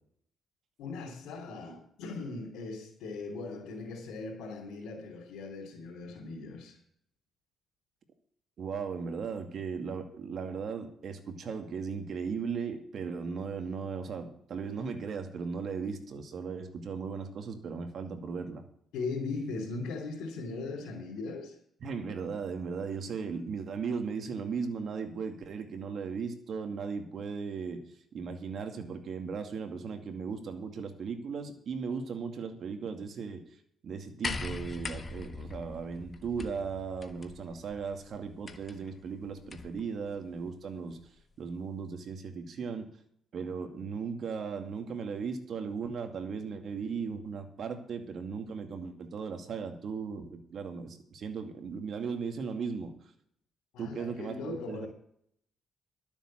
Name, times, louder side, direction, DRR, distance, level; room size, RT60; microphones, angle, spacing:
voice 1, 0.8-6.8 18.9-21.6 53.7-54.9, left 3 dB, 90° left, 3.2 m, -39 dB
voice 2, 8.6-18.6 21.8-27.8 28.1-33.5 33.8-41.0 41.4-42.9 43.3-52.9 53.8-54.9, right 5 dB, 60° right, 2.3 m, -37 dB
sound 1, 34.2-39.8 40.9-41.0, left 3 dB, 35° left, 1.3 m, -41 dB
12.0 x 7.4 x 7.4 m
cardioid pair, 90°, 0 cm